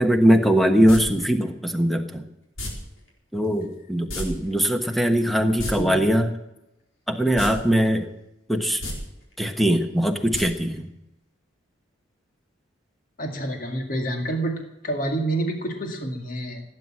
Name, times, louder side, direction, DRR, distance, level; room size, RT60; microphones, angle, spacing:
voice 1, 0.0-2.2 3.3-6.3 7.1-8.1 8.5-8.8 9.4-10.9, equal, ahead, 6 dB, 1.2 m, -21 dB
sound 1, 0.9-1.0 2.6-2.7 4.1-4.3 4.5-4.6 5.4-5.7 7.3-7.5 7.9-8.0 8.7-8.9 10.3-10.4 10.8-10.9, left 1 dB, 80° left, 4.5 m, -30 dB
voice 2, 13.2-16.6, right 1 dB, 45° left, 3 dB, 2.1 m, -28 dB
17.0 x 9.7 x 7.5 m, 0.89 s
head